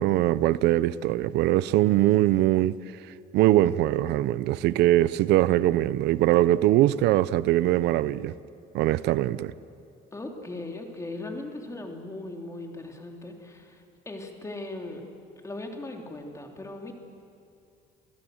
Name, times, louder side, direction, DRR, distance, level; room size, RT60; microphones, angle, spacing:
voice 1, 0.0-2.8 3.3-8.3 8.7-9.5, right 15 dB, 85° right, 0.6 m, -22 dB
voice 2, 10.1-15.0 15.4-16.9, left 2 dB, 20° left, 3.1 m, -38 dB
28.0 x 17.0 x 7.8 m
cardioid pair, 110°, 17 cm